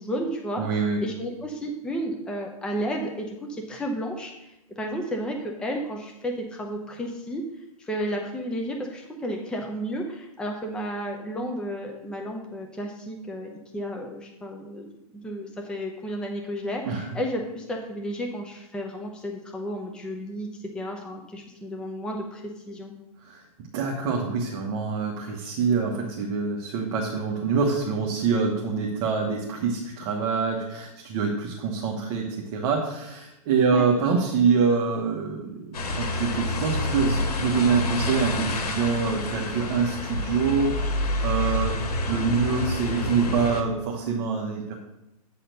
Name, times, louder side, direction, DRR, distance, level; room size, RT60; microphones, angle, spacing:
voice 1, 0.0-0.6 1.0-7.4 7.8-14.9 15.2-22.9 33.7-33.9, equal, 5° left, 1 dB, 0.7 m, -32 dB
voice 2, 0.6-1.0 16.9-17.1 23.2-23.4 23.7-44.8, right 5 dB, 35° right, -1 dB, 1.3 m, -25 dB
Street Scene - After The Rain - Moderate Traffic & Wet Road, 35.7-43.6, left 2 dB, 90° left, 1.6 m, -28 dB
9.0 x 4.2 x 6.7 m, 0.90 s
hypercardioid pair, 150°, 19 cm